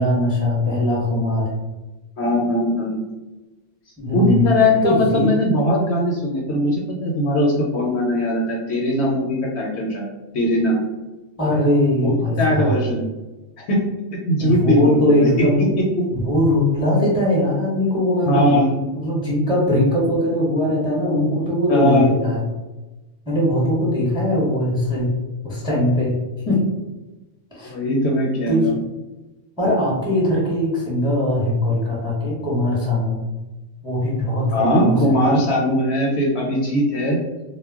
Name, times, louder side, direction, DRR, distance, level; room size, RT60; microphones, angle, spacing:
voice 1, 0.0-1.5 4.0-4.4 4.8-5.3 11.4-12.8 14.4-15.7 16.1-18.5 19.0-22.4 23.3-25.1 25.4-26.1 26.5-26.6 27.5-27.7 28.5-28.7 29.6-33.2 33.8-35.2, left 1 dB, 5° right, -6 dB, 0.6 m, -20 dB
voice 2, 2.2-3.0 4.1-10.0 10.3-10.8 12.0-13.0 13.6-13.8 14.1-15.5 15.8-16.1 18.3-18.7 21.7-22.1 27.6-28.7 34.5-37.2, left 1 dB, 65° left, -1 dB, 0.8 m, -20 dB
2.2 x 2.1 x 3.4 m, 1.1 s
omnidirectional pair, 1.3 m